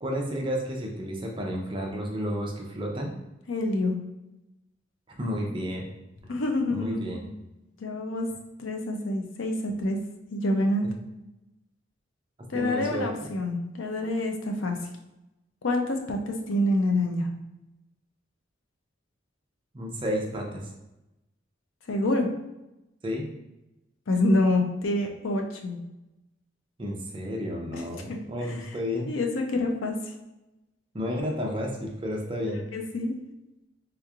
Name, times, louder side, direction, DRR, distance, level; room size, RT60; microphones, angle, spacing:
voice 1, 0.0-3.1 5.1-5.9 6.7-7.3 12.5-13.1 19.7-20.6 23.0-23.3 26.8-29.1 30.9-32.6, equal, 25° right, 0 dB, 0.5 m, -31 dB
voice 2, 3.5-4.0 6.3-7.2 7.8-8.3 8.6-10.0 10.3-10.9 12.5-14.8 15.6-17.3 21.9-22.3 24.1-25.8 27.7-27.8 28.1-28.5 29.1-29.9 32.7-33.1, left 1 dB, 80° left, 3 dB, 0.5 m, -27 dB
3.4 x 3.0 x 2.4 m, 0.95 s
head